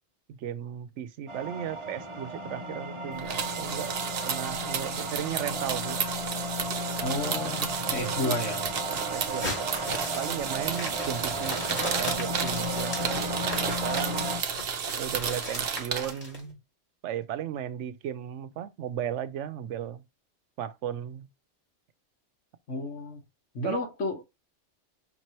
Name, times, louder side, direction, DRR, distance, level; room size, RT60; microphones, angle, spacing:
voice 1, 0.3-4.0 4.2-6.0 7.6-7.7 8.2-8.3 8.9-14.3 15.0-16.6 17.0-20.0 20.6-21.3 23.6-23.8, right 10 dB, 80° right, 0.9 m, -36 dB
sound 1, 1.3-14.4, equal, 30° right, 0.7 m, -35 dB
sound 2, 3.2-16.1, right 7 dB, 60° right, 0.9 m, -32 dB
voice 2, 7.0-8.7 22.7-23.2 23.5-24.2, left 2 dB, 85° left, 2.0 m, -32 dB
sound 3, 9.1-16.4, left 1 dB, 40° left, 2.1 m, -38 dB
5.8 x 3.0 x 2.9 m
omnidirectional pair, 1.2 m